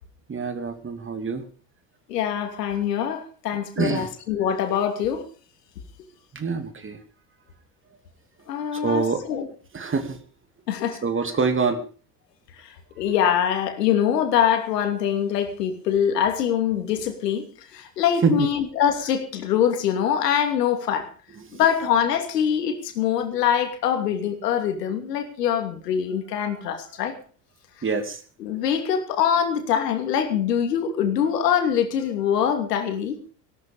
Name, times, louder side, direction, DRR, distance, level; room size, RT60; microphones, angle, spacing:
voice 1, 0.3-1.4 3.8-4.1 6.3-7.0 8.7-9.2 9.7-10.2 11.0-11.8 18.2-18.5 21.5-21.6 26.4-26.6 26.8-26.9 27.8-28.2, right 5 dB, 25° right, 8 dB, 2.7 m, -25 dB
voice 2, 2.1-5.2 8.5-9.5 10.7-11.0 12.6-17.5 17.7-21.1 21.5-27.1 28.4-33.3, left 9 dB, 75° left, 6 dB, 2.9 m, -24 dB
17.5 x 12.5 x 5.3 m, 0.40 s
figure-of-eight pair, 75°, 49 cm